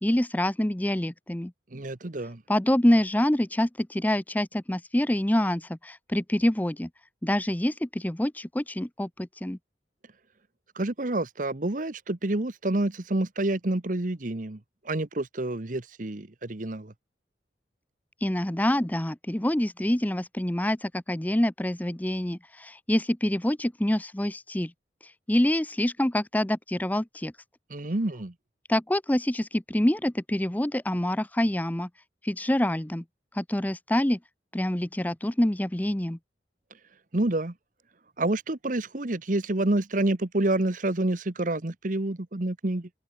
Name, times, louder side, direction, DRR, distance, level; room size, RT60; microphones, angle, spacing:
voice 1, 0.0-1.5 2.5-6.9 7.2-9.6 18.2-24.7 25.3-27.3 28.7-31.9 32.2-33.0 33.3-34.2 34.5-36.2, left 1 dB, 10° left, 0.6 m, -26 dB
voice 2, 1.7-2.4 10.7-14.6 14.8-16.9 27.7-28.3 37.1-37.5 38.2-42.9, right 2 dB, 50° right, 1.2 m, -28 dB
head